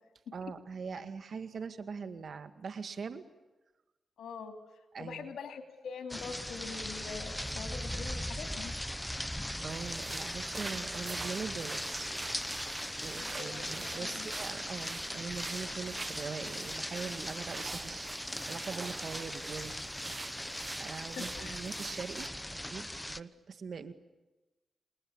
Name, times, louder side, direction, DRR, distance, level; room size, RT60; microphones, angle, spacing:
voice 1, 0.3-3.3 4.9-5.3 9.6-12.1 13.0-19.9 20.2-23.9, right 5 dB, 65° right, 9 dB, 1.8 m, -42 dB
voice 2, 4.2-4.5 5.0-8.7 13.1-14.3 21.2-21.6, left 5 dB, 80° left, 5 dB, 3.1 m, -44 dB
sound 1, 6.1-23.2, left 1 dB, 5° left, 0.9 m, -39 dB
sound 2, 9.7-22.3, right 3 dB, 35° right, 1.1 m, -45 dB
27.5 x 21.0 x 8.8 m, 1.1 s
cardioid pair, 60°, 0 cm